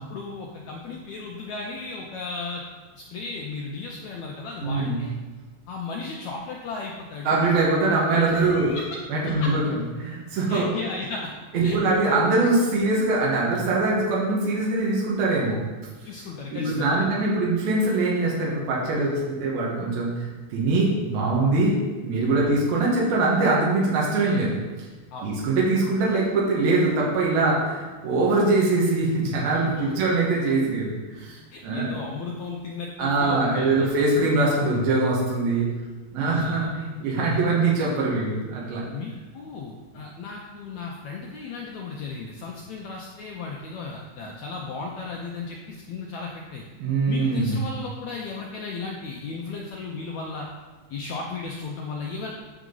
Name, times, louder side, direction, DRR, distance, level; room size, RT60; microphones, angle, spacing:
voice 1, 0.0-2.6 3.0-5.1 5.7-7.4 8.3-9.0 9.3-9.5 10.5-11.3 11.6-12.0 16.0-17.1 22.4-22.6 25.1-25.4 29.8-30.0 31.5-34.0 36.3-36.7 38.9-46.7 47.1-50.5 50.9-52.3, left 4 dB, 80° left, -1 dB, 1.6 m, -35 dB
voice 2, 4.6-5.0 7.2-8.7 9.1-10.7 11.5-15.6 16.5-20.3 20.5-21.7 22.0-24.5 25.2-31.4 31.6-31.9 33.0-35.7 36.1-38.8 46.8-47.6, right 3 dB, 85° right, -4 dB, 3.2 m, -23 dB
9.2 x 6.0 x 3.9 m, 1.3 s
omnidirectional pair, 4.1 m